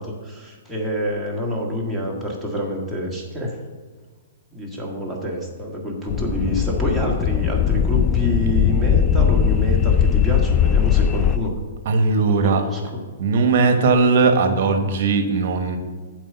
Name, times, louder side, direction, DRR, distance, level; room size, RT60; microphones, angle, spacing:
voice 1, 0.0-3.6 4.5-11.5 12.3-12.8, equal, ahead, -4 dB, 1.7 m, -27 dB
sound 1, 6.1-11.4, left 8 dB, 25° left, 0.3 m, -19 dB
voice 2, 11.8-12.6 13.2-15.8, right 4 dB, 55° right, 7 dB, 1.1 m, -18 dB
7.6 x 4.9 x 6.8 m, 1.4 s
hypercardioid pair, 130°, 0 cm